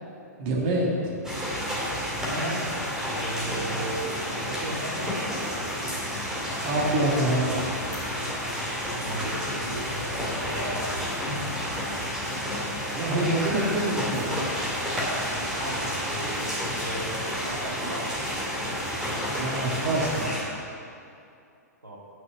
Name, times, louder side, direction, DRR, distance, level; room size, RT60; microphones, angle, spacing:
voice 1, 0.4-1.1 2.3-2.6 6.6-7.7 12.9-14.3 19.3-20.4, right 1 dB, 40° right, -2 dB, 1.7 m, -26 dB
sound 1, 1.2-20.4, equal, 5° right, 2.4 m, -30 dB
voice 2, 2.3-2.8 3.2-5.2 8.9-10.8 15.3-18.1 21.8-22.0, right 1 dB, 80° right, -3 dB, 2.2 m, -36 dB
9.3 x 6.3 x 7.4 m, 2.5 s
figure-of-eight pair, 110°, 9 cm